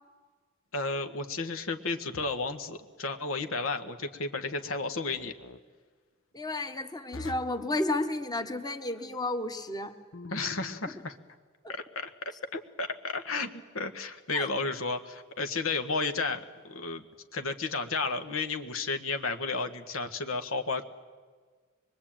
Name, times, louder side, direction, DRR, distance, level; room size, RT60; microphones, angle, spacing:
voice 1, 0.7-5.3 10.3-11.2 11.7-12.1 12.5-17.0 17.3-20.8, left 3 dB, 85° left, 7 dB, 1.6 m, -32 dB
sound 1, 2.1-2.6 5.1-5.6 7.1-7.7 10.1-10.8, left 2 dB, 65° left, 1.0 m, -45 dB
voice 2, 6.3-9.9 14.3-14.5, left 2 dB, 20° left, 8 dB, 1.3 m, -32 dB
24.5 x 22.5 x 9.0 m, 1.5 s
head